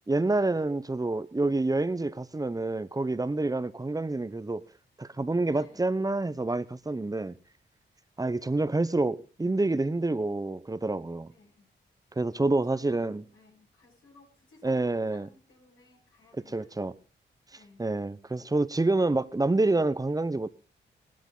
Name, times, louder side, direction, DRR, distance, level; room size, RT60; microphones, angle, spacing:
voice 1, 0.1-4.6 5.0-7.4 8.2-11.3 12.2-13.2 14.6-15.3 16.5-16.9 17.8-20.5, right 2 dB, 20° right, 0.9 m, -27 dB
voice 2, 5.5-5.8 9.8-9.9 11.3-11.7 12.5-16.7 17.5-17.9, left 3 dB, 90° left, 8.0 m, -59 dB
18.5 x 13.5 x 3.9 m
cardioid pair, 70°, 20 cm